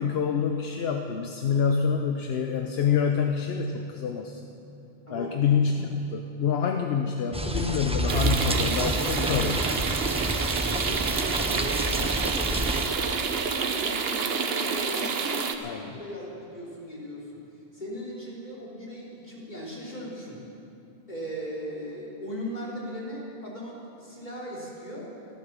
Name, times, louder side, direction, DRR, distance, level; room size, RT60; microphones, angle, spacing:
voice 1, 0.0-4.4 5.1-9.9 15.6-16.0, left 6 dB, 75° left, 4 dB, 1.0 m, -27 dB
sound 1, 7.3-12.9, right 1 dB, 5° right, 0.7 m, -29 dB
sound 2, 8.1-15.5, right 5 dB, 75° right, 1.1 m, -28 dB
voice 2, 10.7-12.6 13.6-17.4 17.7-20.4 21.1-25.1, equal, 45° left, -5 dB, 3.5 m, -38 dB
14.0 x 13.5 x 7.3 m, 2.8 s
omnidirectional pair, 1.0 m